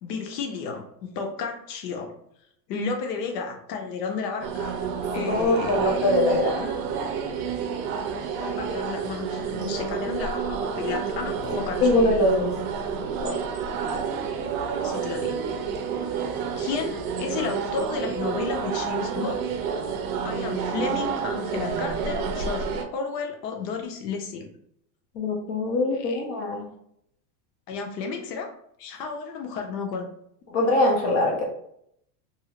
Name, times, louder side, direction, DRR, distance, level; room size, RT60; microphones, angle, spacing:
voice 1, 0.0-2.1 2.7-4.8 5.1-6.0 8.4-11.9 14.8-15.5 16.6-19.6 20.2-24.5 25.9-26.2 27.7-28.5 28.8-30.1, left 4 dB, 75° left, 4 dB, 0.7 m, -32 dB
sound 1, 4.4-22.9, right 6 dB, 60° right, 0.6 m, -29 dB
voice 2, 5.1-6.7 11.4-12.5 13.2-13.3 25.2-26.6 30.5-31.5, left 1 dB, 30° left, 0 dB, 0.5 m, -23 dB
2.7 x 2.4 x 2.8 m, 0.72 s
supercardioid pair, 140°, 49 cm